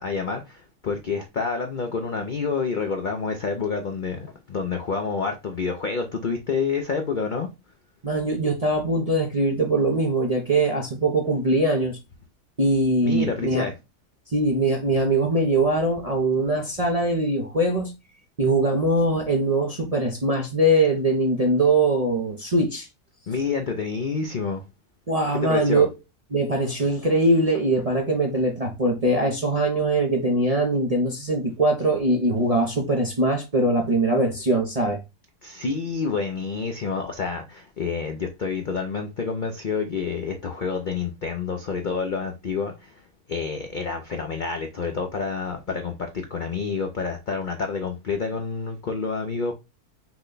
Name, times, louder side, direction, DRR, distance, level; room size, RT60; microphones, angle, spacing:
voice 1, 0.0-7.5 13.0-13.7 23.3-24.6 25.3-25.9 35.4-43.0 43.3-49.5, left 5 dB, 60° left, 0.5 m, -28 dB
voice 2, 8.0-12.0 12.6-13.7 14.3-17.9 18.4-22.9 25.1-25.9 26.3-35.0, right 2 dB, 40° right, 0.5 m, -22 dB
6.0 x 2.2 x 3.8 m
omnidirectional pair, 1.6 m